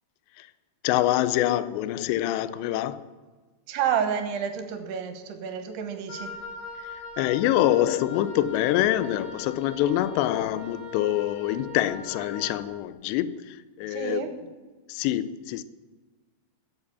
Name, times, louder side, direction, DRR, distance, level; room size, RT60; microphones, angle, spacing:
voice 1, 0.8-3.1 7.2-14.2 14.9-15.6, left 13 dB, 85° left, 2.6 m, -25 dB
voice 2, 3.7-6.3 13.9-14.3, right 8 dB, 70° right, 3.0 m, -29 dB
Wind instrument woodwind instrument, 6.1-12.6, left 2 dB, 65° left, 5.1 m, -41 dB
14.5 x 8.1 x 6.8 m
omnidirectional pair, 5.4 m